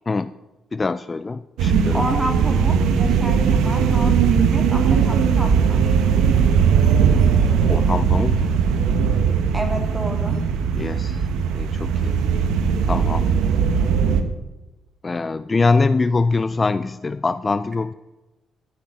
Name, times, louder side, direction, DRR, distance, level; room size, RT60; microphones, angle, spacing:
voice 1, 0.7-2.1 7.7-8.5 10.8-11.2 11.5-12.2 12.9-13.3 15.0-17.9, left 3 dB, 25° left, 14 dB, 0.4 m, -23 dB
sound 1, 1.6-14.2, right 6 dB, 85° right, 1.2 m, -19 dB
voice 2, 1.9-5.9 9.5-10.4, right 1 dB, 15° right, 3 dB, 3.0 m, -29 dB
14.0 x 6.7 x 8.7 m, 1.1 s
cardioid pair, 90°, 0 cm